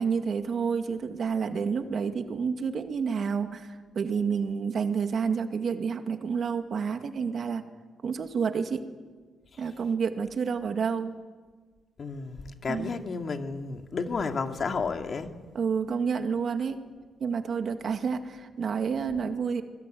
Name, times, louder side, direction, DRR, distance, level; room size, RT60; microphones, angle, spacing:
voice 1, 0.0-7.6 8.0-8.8 9.6-11.2 12.7-12.9 15.5-16.8 17.2-19.6, right 6 dB, 50° right, 2.2 m, -29 dB
voice 2, 12.0-15.3, left 4 dB, 45° left, 2.3 m, -32 dB
24.5 x 21.0 x 9.3 m
cardioid pair, 90°, 0 cm